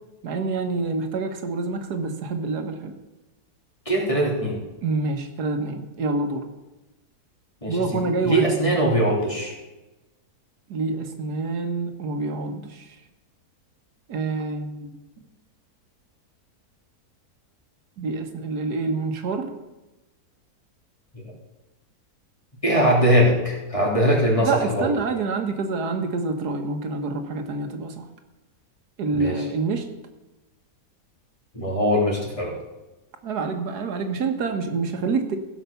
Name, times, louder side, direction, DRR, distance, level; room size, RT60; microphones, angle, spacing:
voice 1, 0.2-2.9 4.8-6.5 7.7-8.5 10.7-12.9 14.1-14.9 18.0-19.5 24.4-28.1 29.0-29.9 33.2-35.4, right 3 dB, 85° right, 6 dB, 1.7 m, -27 dB
voice 2, 3.9-4.6 7.6-7.8 8.2-9.5 21.1-21.2 22.6-24.9 29.1-29.4 31.5-32.5, equal, 20° left, -3 dB, 3.3 m, -21 dB
16.0 x 5.9 x 6.8 m, 1.0 s
omnidirectional pair, 1.6 m